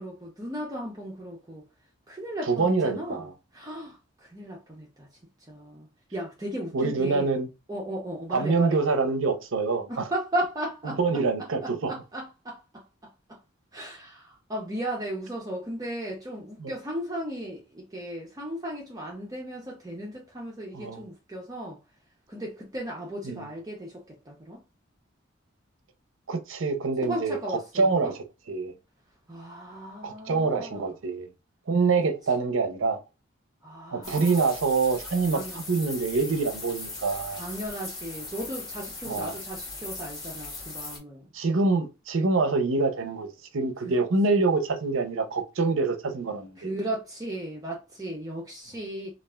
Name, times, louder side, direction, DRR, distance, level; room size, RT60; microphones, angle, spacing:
voice 1, 0.0-1.7 2.1-3.3 3.5-5.1 5.4-7.4 7.7-8.8 9.9-11.0 11.4-13.4 13.7-21.8 22.3-24.6 27.0-28.2 29.3-30.9 33.6-34.5 35.3-35.6 37.3-41.3 43.8-44.0 46.6-49.1, right 1 dB, 15° right, 0.5 m, -36 dB
voice 2, 2.5-3.3 6.7-7.5 8.3-10.1 11.0-11.9 16.6-16.7 20.7-21.0 23.3-23.5 26.3-28.7 30.0-31.3 31.7-33.0 33.9-37.4 39.1-39.3 41.3-43.3 43.5-46.7, right 4 dB, 65° right, 0.5 m, -26 dB
sound 1, 34.0-41.0, left 2 dB, 20° left, 1.0 m, -39 dB
3.2 x 2.4 x 2.2 m
head